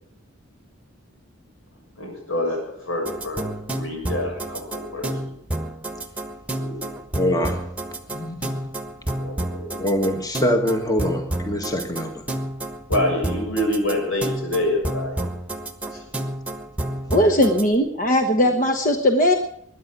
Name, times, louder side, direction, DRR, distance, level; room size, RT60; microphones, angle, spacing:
voice 1, 2.0-5.1 6.5-6.9 9.2-9.9 12.9-15.2 15.9-16.0 17.0-17.5 18.4-18.5, left 1 dB, 85° left, 2 dB, 6.9 m, -27 dB
sound 1, 3.1-17.7, right 1 dB, 5° right, 1.4 m, -30 dB
voice 2, 7.1-7.6 8.1-8.5 9.8-12.2, left 1 dB, 20° left, 5 dB, 1.7 m, -24 dB
voice 3, 17.1-19.3, left 1 dB, 40° left, 6 dB, 1.2 m, -18 dB
22.5 x 10.0 x 6.1 m, 0.73 s
head